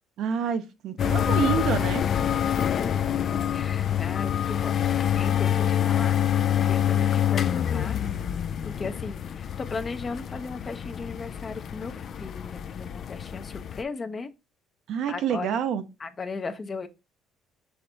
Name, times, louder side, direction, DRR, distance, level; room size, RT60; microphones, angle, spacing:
voice 1, 0.2-2.1 14.9-15.8, right 7 dB, 70° right, 0.6 m, -28 dB
sound 1, 1.0-13.8, left 10 dB, 55° left, 0.3 m, -26 dB
voice 2, 2.6-3.1 3.5-6.2 6.5-8.0 8.6-14.3 15.1-15.5 16.0-16.9, left 4 dB, 35° left, 0.7 m, -37 dB
5.8 x 3.3 x 2.7 m
supercardioid pair, 80°, 0 cm